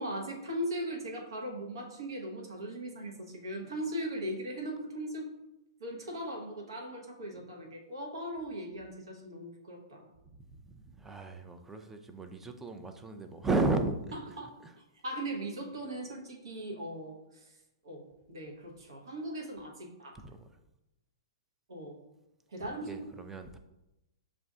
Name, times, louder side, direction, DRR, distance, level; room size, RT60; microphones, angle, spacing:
voice 1, 0.0-5.3 5.8-10.1 14.4-14.5 15.0-17.4 17.8-20.2 21.7-22.0 22.5-22.9, right 1 dB, 70° right, 1 dB, 0.9 m, -39 dB
voice 2, 10.3-14.2 14.6-14.7 20.1-20.5 22.6-23.6, right 3 dB, 10° right, 6 dB, 0.4 m, -34 dB
6.9 x 2.5 x 2.3 m, 0.93 s
figure-of-eight pair, 110°, 3 cm